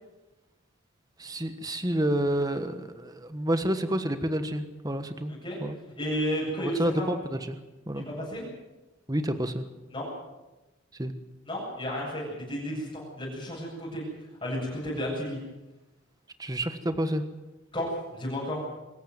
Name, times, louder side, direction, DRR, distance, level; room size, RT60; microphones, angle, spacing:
voice 1, 1.2-5.3 5.6-5.8 6.6-7.6 7.9-8.0 9.1-9.6 11.0-11.1 16.4-17.2, right 1 dB, 20° right, 9 dB, 1.3 m, -29 dB
voice 2, 6.0-7.1 7.9-8.4 9.9-10.1 11.5-14.0 14.4-15.4 17.7-18.6, equal, 25° left, -6 dB, 7.8 m, -32 dB
25.0 x 14.0 x 9.4 m, 1.1 s
head